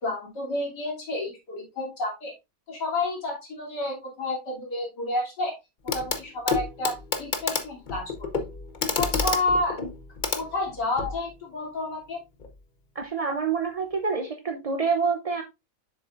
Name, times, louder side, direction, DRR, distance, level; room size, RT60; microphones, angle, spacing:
voice 1, 0.0-2.3 2.7-5.5 5.8-8.3 9.0-9.8 10.3-12.2, left 2 dB, 80° left, 3.5 m, -30 dB
Clock, 5.9-6.2 6.5-11.2 12.4-12.5, left 5 dB, 35° left, 0.9 m, -29 dB
voice 2, 12.9-15.4, right 5 dB, 45° right, 0.4 m, -27 dB
7.6 x 7.0 x 2.5 m
omnidirectional pair, 1.8 m